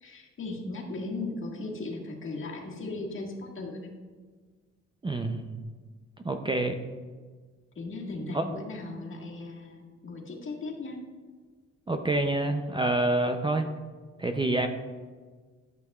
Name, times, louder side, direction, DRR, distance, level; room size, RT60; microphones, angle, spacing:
voice 1, 0.0-3.9 7.8-11.0, left 2 dB, 40° left, -1 dB, 1.7 m, -37 dB
voice 2, 5.0-5.6 6.2-6.8 8.3-8.4 11.9-13.7 14.2-14.7, right 2 dB, 15° right, 5 dB, 0.5 m, -27 dB
12.0 x 6.2 x 2.4 m, 1.5 s
cardioid pair, 90°, 30 cm